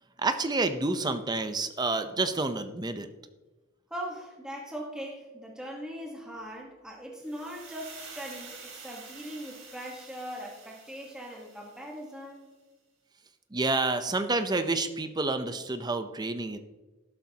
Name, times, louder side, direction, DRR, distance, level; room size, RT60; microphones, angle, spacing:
voice 1, 0.2-3.1 13.5-16.6, right 3 dB, 20° right, 9 dB, 0.6 m, -29 dB
voice 2, 3.9-12.5, equal, 5° right, -2 dB, 1.3 m, -40 dB
sound 1, 7.2-12.2, right 5 dB, 65° right, 2.8 m, -48 dB
13.0 x 12.0 x 2.8 m, 1.2 s
head